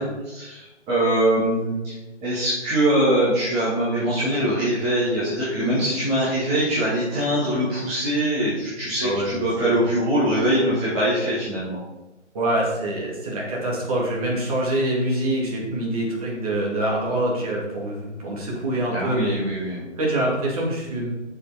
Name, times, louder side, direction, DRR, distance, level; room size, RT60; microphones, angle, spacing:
voice 1, 0.0-1.9 2.2-11.8 18.9-19.9, right 1 dB, 15° right, -10 dB, 1.9 m, -23 dB
voice 2, 9.0-9.7 12.3-19.4 20.0-21.1, right 1 dB, 30° right, -4 dB, 2.7 m, -25 dB
7.1 x 6.8 x 5.1 m, 1.0 s
figure-of-eight pair, 150°, 36 cm